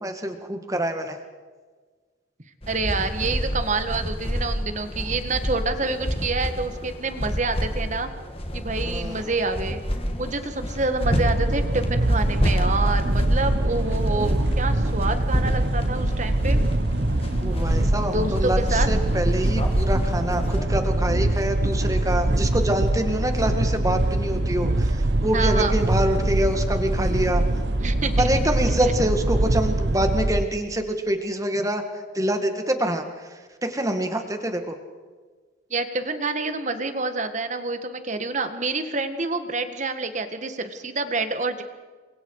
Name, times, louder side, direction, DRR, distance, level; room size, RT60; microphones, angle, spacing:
voice 1, 0.0-1.2 8.8-9.3 17.4-27.4 28.2-34.8, right 1 dB, 15° right, 6 dB, 2.2 m, -26 dB
sound 1, 2.6-20.6, equal, 30° left, 2.5 m, -28 dB
voice 2, 2.7-8.1 8.5-9.8 10.2-16.6 18.1-18.9 25.3-25.7 27.8-28.3 35.7-41.6, right 3 dB, 40° right, 9 dB, 1.8 m, -27 dB
sound 2, 11.0-30.4, right 1 dB, 60° right, 1.2 m, -23 dB
30.0 x 24.0 x 4.9 m, 1.4 s
head